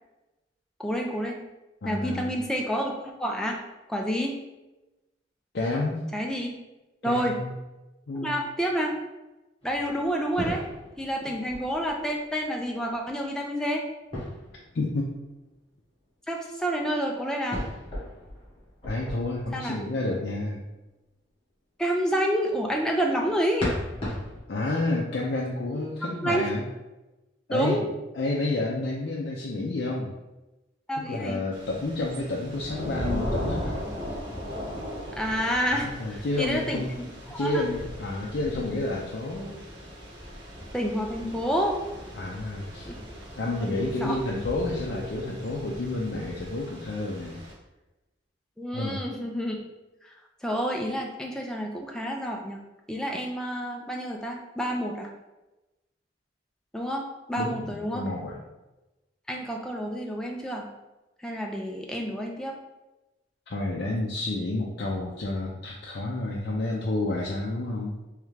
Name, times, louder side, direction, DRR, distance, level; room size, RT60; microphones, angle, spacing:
voice 1, 0.8-1.4 1.8-3.6 3.9-4.4 6.1-6.6 7.0-7.3 8.2-8.9 9.6-10.6 11.0-13.8 16.3-17.6 19.5-19.8 21.8-23.7 26.1-26.4 27.5-27.8 30.9-31.4 35.2-36.8 37.3-37.6 40.7-41.8 42.9-43.0 43.5-44.2 48.6-49.6 50.4-52.6 52.9-55.1 56.7-58.1 59.3-60.7 61.2-62.5, equal, 5° left, 0 dB, 0.4 m, -29 dB
voice 2, 1.8-2.4 5.5-6.0 7.0-7.5 8.1-8.3 14.7-15.1 18.9-20.6 24.5-26.6 27.5-27.9 28.1-30.1 31.1-33.8 35.7-36.9 37.4-39.6 42.1-42.9 43.4-47.4 48.7-49.0 57.4-58.4 63.5-68.0, left 2 dB, 60° left, -3 dB, 0.5 m, -30 dB
sound 1, 9.6-12.4 14.1-15.2 17.5-20.2 23.6-24.4, left 1 dB, 30° left, 1.4 m, -36 dB
Thunder / Rain, 31.5-47.5, equal, 85° right, 1.2 m, -38 dB
3.6 x 3.1 x 3.3 m, 1.0 s
head